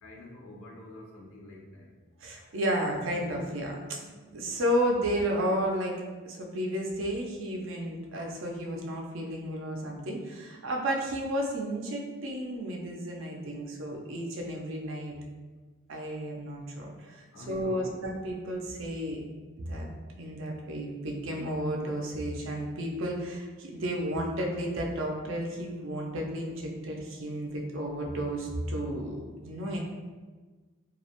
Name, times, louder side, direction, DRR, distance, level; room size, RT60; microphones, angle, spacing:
voice 1, 0.0-1.9 17.3-18.0, left 1 dB, 80° left, -2 dB, 0.6 m, -46 dB
voice 2, 2.2-5.9 6.3-15.1 15.9-19.2 19.7-19.9 20.2-29.8, equal, 65° right, 0 dB, 0.4 m, -32 dB
2.3 x 2.0 x 2.8 m, 1.3 s
head